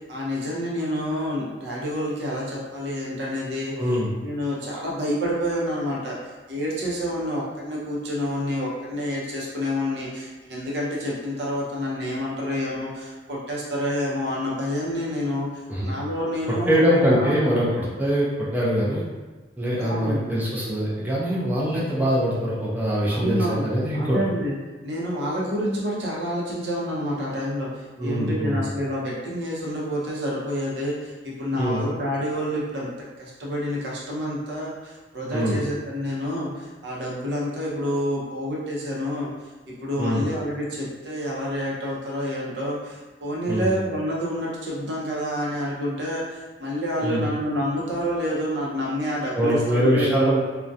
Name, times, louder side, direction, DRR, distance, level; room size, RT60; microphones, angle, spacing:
voice 1, 0.1-4.0 4.2-6.2 6.5-15.5 15.8-16.8 17.0-17.5 19.8-20.3 23.1-23.7 23.9-24.5 24.8-32.9 33.2-39.3 39.7-50.3, equal, 65° right, -4 dB, 0.6 m, -28 dB
voice 2, 3.8-4.1 15.7-15.9 16.7-19.0 19.6-24.2 28.0-28.6 31.6-31.8 35.3-35.6 40.0-40.2 43.5-43.7 47.0-47.2 49.3-50.4, equal, 10° right, -7 dB, 0.4 m, -23 dB
2.3 x 2.1 x 2.6 m, 1.2 s
head